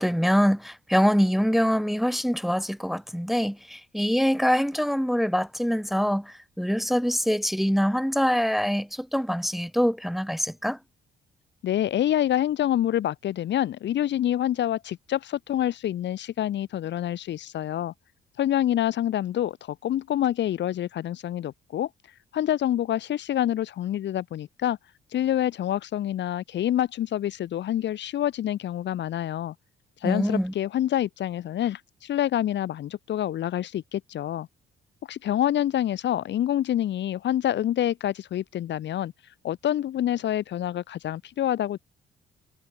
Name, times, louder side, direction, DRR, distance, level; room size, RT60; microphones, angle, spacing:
voice 1, 0.0-10.8 30.0-30.5, equal, ahead, 0.9 m, -24 dB
voice 2, 11.6-17.9 18.4-21.9 22.3-24.8 25.1-29.5 30.0-34.5 35.1-39.1 39.4-41.8, left 11 dB, 65° left, 0.9 m, -27 dB
cardioid pair, 90°, 20 cm